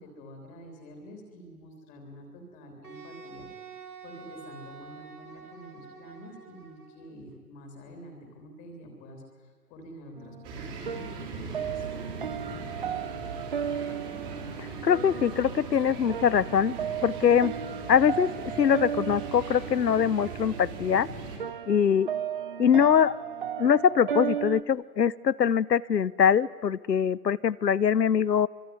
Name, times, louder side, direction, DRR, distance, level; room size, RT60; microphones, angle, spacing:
voice 1, 0.0-11.9 12.2-13.0, equal, 15° left, 4 dB, 3.3 m, -48 dB
Wind instrument woodwind instrument, 2.8-7.1, right 5 dB, 70° right, 3.9 m, -47 dB
sound 1, 10.2-24.6, right 8 dB, 35° right, 1.0 m, -35 dB
sound 2, 10.4-21.4, right 4 dB, 15° right, 3.6 m, -40 dB
voice 2, 14.8-16.8 17.0-17.5 17.9-21.1 21.7-22.1 22.6-23.1 23.6-28.5, left 8 dB, 90° left, 20 dB, 0.9 m, -23 dB
24.5 x 24.0 x 9.5 m, 1.5 s
hypercardioid pair, 155°, 47 cm